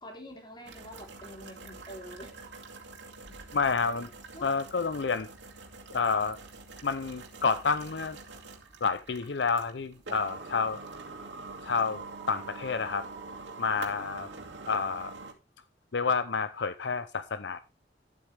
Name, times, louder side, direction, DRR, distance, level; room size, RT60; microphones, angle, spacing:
voice 1, 0.0-2.3 4.3-4.5, equal, 25° left, 3.3 m, -46 dB
sound 1, 0.7-15.3, right 3 dB, 90° right, 2.4 m, -45 dB
voice 2, 3.5-4.1 4.4-5.3 5.9-6.4 6.8-8.2 8.8-10.8 11.6-13.1 13.6-14.3 14.7-15.1 15.9-17.6, left 5 dB, 75° left, 0.6 m, -29 dB
12.0 x 8.2 x 3.4 m
head